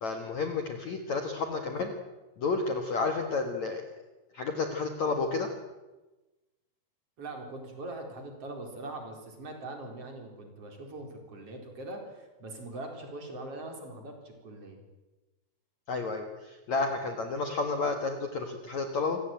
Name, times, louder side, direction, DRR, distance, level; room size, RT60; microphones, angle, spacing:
voice 1, 0.0-1.9 2.4-3.9 4.3-5.5 15.9-19.2, left 4 dB, 60° left, 5 dB, 2.0 m, -31 dB
voice 2, 7.2-14.8, right 2 dB, 30° right, 3 dB, 4.8 m, -42 dB
27.0 x 16.5 x 9.2 m, 1.1 s
omnidirectional pair, 5.5 m